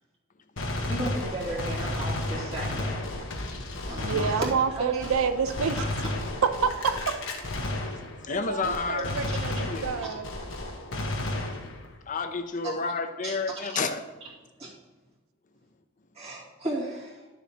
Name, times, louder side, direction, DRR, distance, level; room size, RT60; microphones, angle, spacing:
Gunshot gunfire, 0.6-8.4 8.6-12.0, left 2 dB, 60° left, 1.2 m, -33 dB
voice 1, 0.9-3.0 3.9-5.1 9.4-9.5 12.6-12.9 13.2-13.4 14.6-14.7 16.1-17.3, right 1 dB, 30° right, -6 dB, 2.4 m, -35 dB
voice 2, 4.0-5.8 6.4-7.2 8.3-10.3, right 6 dB, 70° right, 11 dB, 0.5 m, -28 dB
voice 3, 8.2-10.1 12.1-14.0, left 4 dB, 35° left, 8 dB, 0.6 m, -31 dB
11.5 x 7.1 x 2.9 m, 1.2 s
head